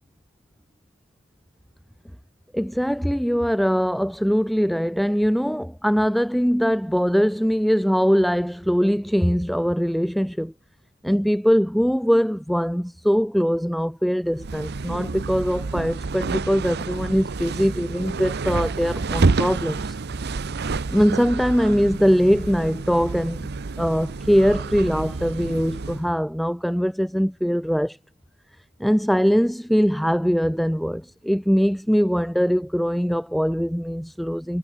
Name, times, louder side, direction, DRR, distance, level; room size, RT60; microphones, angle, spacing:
voice 1, 2.5-10.5 11.0-20.0 20.6-23.5 23.8-28.0 28.8-34.6, equal, ahead, 0.3 m, -22 dB
sound 1, 14.3-26.1, right 3 dB, 55° right, 0.7 m, -28 dB
head